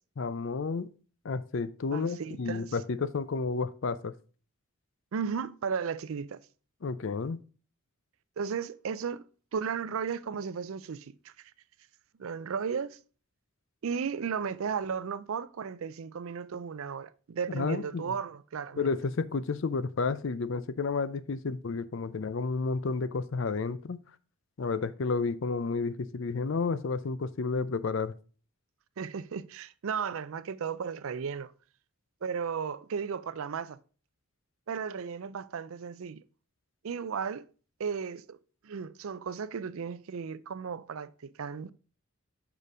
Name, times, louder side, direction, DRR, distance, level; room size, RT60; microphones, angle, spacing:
voice 1, 0.2-0.9 1.2-4.1 6.8-7.4 17.5-18.0 18.8-24.0 24.6-28.1, left 4 dB, 55° left, 0.5 m, -31 dB
voice 2, 1.9-2.8 5.1-6.4 8.4-9.2 9.5-11.5 12.2-13.0 13.8-18.9 29.0-31.5 32.2-33.8 34.7-36.2 36.8-37.5 37.8-38.4 38.6-41.7, right 6 dB, 70° right, 0.4 m, -35 dB
6.7 x 5.1 x 4.9 m
head